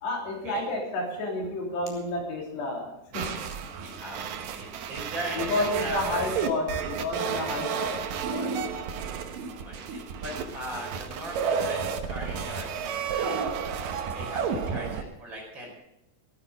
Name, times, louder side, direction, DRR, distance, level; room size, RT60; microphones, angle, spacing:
voice 1, 0.0-3.4 5.4-8.0 8.3-8.5, left 2 dB, 70° left, -1 dB, 5.2 m, -31 dB
sound 1, 3.1-15.0, right 6 dB, 65° right, 2.4 m, -32 dB
voice 2, 3.8-6.5 9.4-13.5 14.1-15.7, right 1 dB, 25° right, -1 dB, 5.2 m, -39 dB
15.0 x 14.0 x 4.9 m, 0.83 s
omnidirectional pair, 5.0 m